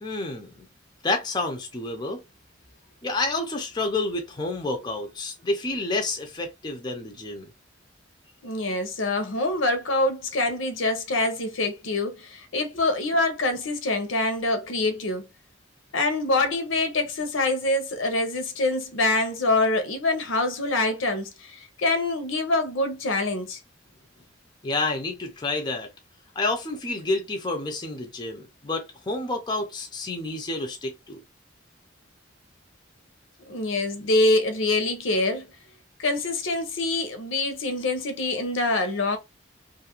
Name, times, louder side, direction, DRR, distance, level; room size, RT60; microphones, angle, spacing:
voice 1, 0.0-0.5 1.0-2.2 3.0-7.5 24.6-25.9 26.4-31.2, left 2 dB, 20° left, 0.5 m, -29 dB
voice 2, 8.4-15.3 15.9-23.6 33.4-35.5 36.0-39.2, left 2 dB, 80° left, 0.7 m, -25 dB
2.6 x 2.4 x 2.9 m
head